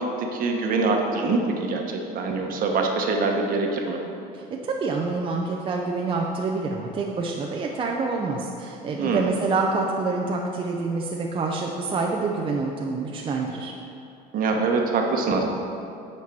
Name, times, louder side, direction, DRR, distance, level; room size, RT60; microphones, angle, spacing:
voice 1, 0.2-4.0 9.0-9.4 14.3-15.4, right 3 dB, 55° right, 2 dB, 1.2 m, -24 dB
voice 2, 4.3-13.7, right 3 dB, 30° right, 0 dB, 0.7 m, -27 dB
8.8 x 4.5 x 6.1 m, 2.7 s
cardioid pair, 110°, 18 cm